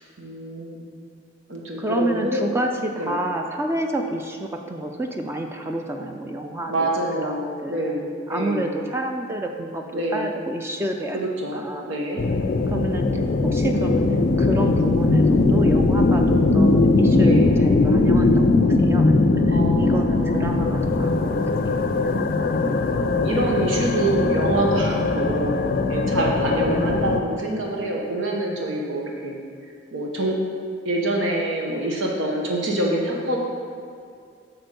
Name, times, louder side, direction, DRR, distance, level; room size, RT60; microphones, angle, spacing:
voice 1, 0.2-0.8 1.5-2.5 3.0-3.2 6.7-8.7 9.9-10.3 11.1-12.2 17.1-17.6 19.5-20.6 22.9-25.5 25.9-29.3 29.9-30.4 30.8-33.4, right 1 dB, 80° right, -1 dB, 1.1 m, -26 dB
voice 2, 1.8-6.9 7.2-8.0 8.3-11.2 11.5-12.0 12.7-21.3 21.7-21.8 26.5-27.1, right 1 dB, 15° right, 3 dB, 0.4 m, -29 dB
sound 1, 12.2-27.2, left 2 dB, 45° left, 0.4 m, -20 dB
8.0 x 4.3 x 6.7 m, 2.4 s
head